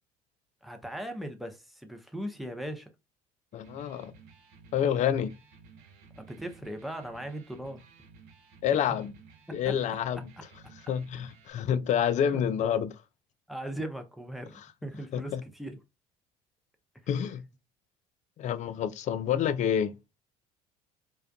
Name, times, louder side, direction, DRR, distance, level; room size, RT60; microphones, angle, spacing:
voice 1, 0.6-2.9 6.2-7.8 12.3-12.4 13.5-15.8, right 1 dB, ahead, 0.6 m, -38 dB
voice 2, 3.5-4.1 4.7-5.3 8.6-9.1 9.5-10.2 10.9-13.0 15.1-15.4 17.1-17.4 18.4-19.9, left 9 dB, 40° left, 0.4 m, -28 dB
Electric guitar, 3.5-11.5, right 5 dB, 65° right, 0.8 m, -55 dB
2.5 x 2.2 x 2.3 m
hypercardioid pair, 65°, 18 cm